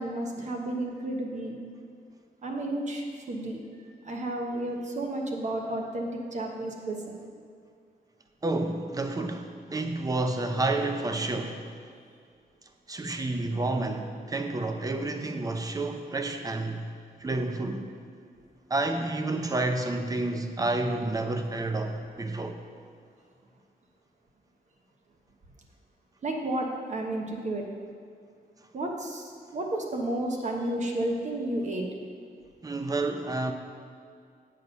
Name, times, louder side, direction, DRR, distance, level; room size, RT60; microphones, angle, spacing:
voice 1, 0.0-1.6 2.4-7.2 13.3-13.5 26.2-27.7 28.7-31.8, right 1 dB, 45° right, 1 dB, 1.1 m, -32 dB
voice 2, 8.4-11.7 12.9-16.9 17.2-17.9 18.7-22.6 32.6-33.5, right 2 dB, 20° right, 6 dB, 0.6 m, -30 dB
8.3 x 6.4 x 5.5 m, 2.3 s
wide cardioid pair, 150°, 16 cm